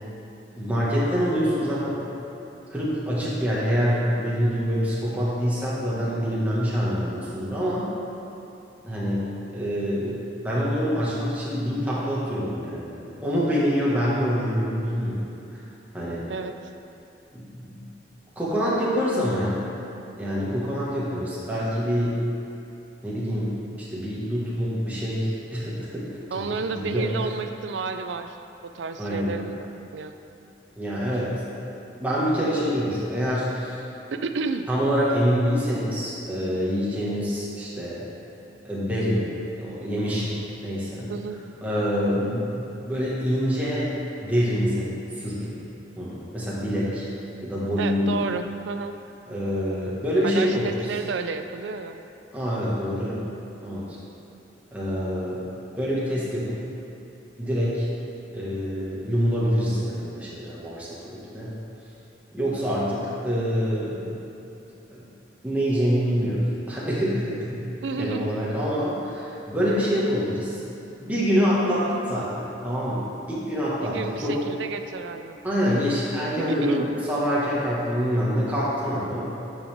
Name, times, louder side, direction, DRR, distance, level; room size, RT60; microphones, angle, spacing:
voice 1, 0.5-2.0 2.7-7.9 8.8-15.2 15.9-16.2 17.3-17.9 18.4-19.7 20.2-22.2 23.0-23.6 23.9-26.4 26.7-27.1 29.0-29.3 30.8-31.4 32.0-33.8 34.7-38.0 38.6-39.3 39.6-40.4 40.6-41.1 41.6-43.9 44.2-44.9 45.2-45.6 46.0-47.0 47.4-48.1 49.3-50.7 52.3-53.3 53.6-54.0 54.7-55.4 55.7-56.6 57.4-57.9 58.3-61.5 62.3-64.2 64.9-65.1 65.4-67.5 68.0-70.6 71.0-74.4 75.4-76.8 77.1-79.3, equal, 10° right, -9 dB, 1.5 m, -26 dB
voice 2, 26.3-28.4 28.6-29.7 29.9-30.1 34.1-34.7 41.1-41.4 47.8-49.0 50.2-52.0 67.8-68.3 73.8-75.4 76.5-76.9, right 4 dB, 85° right, 8 dB, 0.4 m, -31 dB
9.7 x 5.4 x 3.5 m, 2.9 s
head